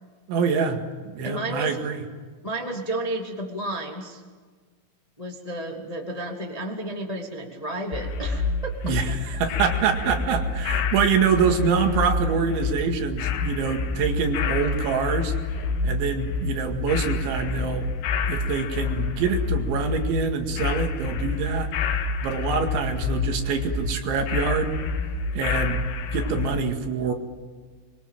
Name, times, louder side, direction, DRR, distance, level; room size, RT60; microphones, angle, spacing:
voice 1, 0.3-0.8 1.1-2.0 8.8-15.3 15.8-17.9 18.3-24.8 25.3-25.8 26.1-27.1, right 6 dB, 75° right, 4 dB, 4.3 m, -25 dB
voice 2, 1.2-1.8 2.4-4.2 5.2-8.5, right 1 dB, 15° left, 1 dB, 1.3 m, -32 dB
sound 1, 7.9-26.6, left 4 dB, 90° left, 4.0 m, -28 dB
25.0 x 23.0 x 7.6 m, 1.5 s
omnidirectional pair, 5.5 m